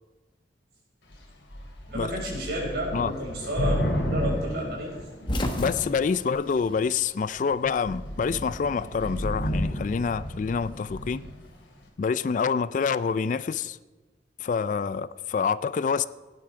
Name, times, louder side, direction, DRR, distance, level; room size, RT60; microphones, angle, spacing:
Thunder / Rain, 1.1-1.3 1.5-5.6 6.4-6.8 7.2-7.4 7.6-11.4, equal, 80° left, 2.9 m, -32 dB
voice 1, 1.9-5.0, equal, 60° right, 5.2 m, -31 dB
sound 1, 4.9-7.5 7.8-8.8 10.0-11.5, left 1 dB, 25° left, 1.2 m, -34 dB
voice 2, 5.6-11.2 12.0-13.8 14.4-16.1, left 5 dB, 45° left, 0.3 m, -27 dB
17.0 x 10.5 x 4.8 m
head